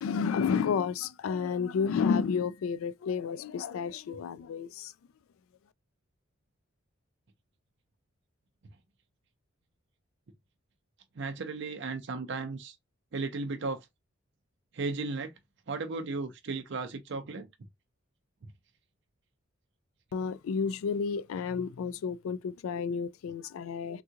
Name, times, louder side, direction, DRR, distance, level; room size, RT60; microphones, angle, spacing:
voice 1, 0.0-4.9 20.1-24.0, left 6 dB, 85° left, 0.3 m, -31 dB
voice 2, 11.2-12.8 13.1-13.9 14.7-15.3 15.7-17.5, right 3 dB, 60° right, 0.5 m, -35 dB
3.6 x 2.3 x 2.8 m
head